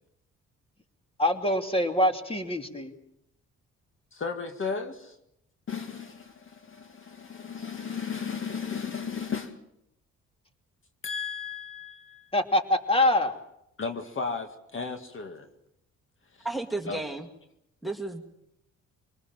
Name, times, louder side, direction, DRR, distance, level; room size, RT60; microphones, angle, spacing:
voice 1, 1.2-2.9 12.3-13.3, left 1 dB, 20° left, 6 dB, 2.9 m, -24 dB
voice 2, 4.1-5.2 5.7-9.6 11.0-12.3 13.8-15.5 16.4-16.5 16.9-17.0, left 5 dB, 40° left, 6 dB, 2.1 m, -35 dB
voice 3, 16.4-17.3 17.8-18.2, right 2 dB, ahead, 6 dB, 2.2 m, -32 dB
25.0 x 20.0 x 7.6 m, 0.81 s
cardioid pair, 90°, 30 cm